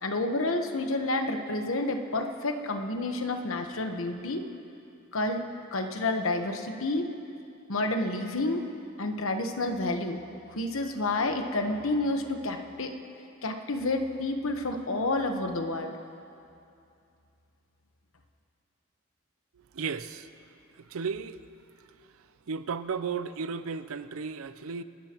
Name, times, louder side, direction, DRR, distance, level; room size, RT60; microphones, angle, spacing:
voice 1, 0.0-4.5 5.1-5.4 5.7-7.1 7.7-8.7 9.0-10.2 10.5-13.0 13.4-16.0, left 2 dB, 70° left, 5 dB, 1.1 m, -29 dB
voice 2, 19.7-20.3 20.8-21.4 22.5-24.8, right 5 dB, 80° right, 12 dB, 0.5 m, -34 dB
28.0 x 13.5 x 3.0 m, 2.6 s
head